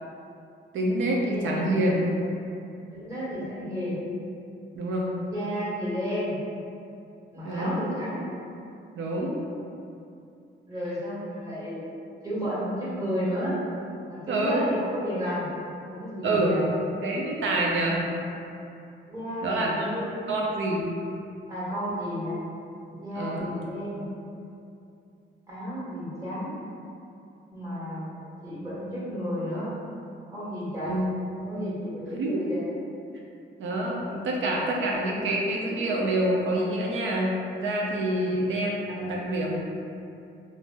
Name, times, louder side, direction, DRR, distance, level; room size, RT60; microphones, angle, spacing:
voice 1, 0.7-2.0 4.7-5.1 7.4-7.8 8.9-9.4 14.3-14.6 16.2-16.6 17.0-18.0 19.4-20.0 20.3-20.9 23.1-23.5 30.8-31.1 32.2-32.4 33.6-39.6, right 1 dB, 75° right, -2 dB, 0.5 m, -26 dB
voice 2, 2.9-4.0 5.1-6.4 7.3-8.2 10.6-11.8 12.2-13.6 14.0-15.5 15.9-16.7 19.1-20.1 21.5-22.4 22.9-24.0 25.5-26.5 27.5-28.1 28.4-29.7 30.3-30.9 31.4-32.6 38.0-38.3, equal, 15° right, -10 dB, 1.4 m, -32 dB
2.6 x 2.0 x 3.3 m, 2.6 s
cardioid pair, 80°, 20 cm